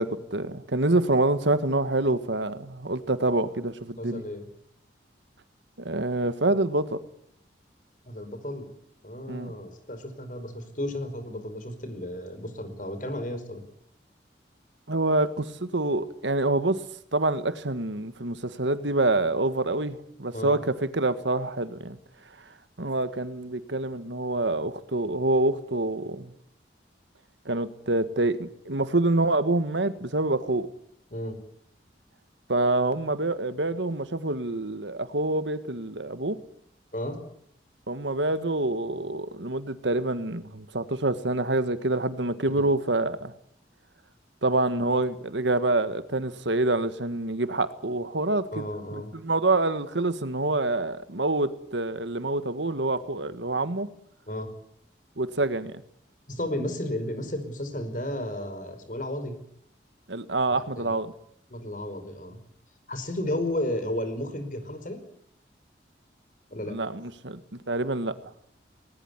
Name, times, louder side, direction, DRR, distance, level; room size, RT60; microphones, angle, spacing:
voice 1, 0.0-4.2 5.8-7.0 9.3-9.5 14.9-16.8 17.1-22.0 22.8-26.3 27.4-30.7 32.5-36.4 37.9-43.3 44.4-53.9 55.2-55.8 60.1-61.1 66.6-67.4 67.7-68.1, right 2 dB, 80° right, 12 dB, 1.7 m, -26 dB
voice 2, 4.0-4.5 8.1-8.7 9.0-13.6 20.3-20.6 31.1-31.4 36.9-37.2 48.5-49.1 54.3-54.5 56.3-59.4 60.5-60.9 61.5-62.4 62.9-65.0 66.5-66.8, left 1 dB, 45° left, 9 dB, 5.2 m, -33 dB
20.0 x 19.5 x 9.8 m, 0.67 s
head